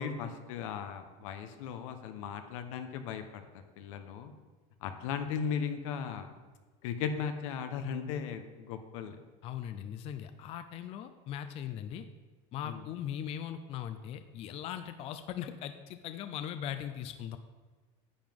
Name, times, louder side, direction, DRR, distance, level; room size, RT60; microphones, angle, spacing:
voice 1, 0.0-3.4 3.8-4.3 4.8-6.3 6.8-9.2 12.6-12.8, left 7 dB, 85° left, 8 dB, 1.0 m, -37 dB
voice 2, 9.4-12.1 12.5-17.4, left 10 dB, 40° left, 10 dB, 0.4 m, -39 dB
10.0 x 7.7 x 3.6 m, 1.3 s
cardioid pair, 150°, 16 cm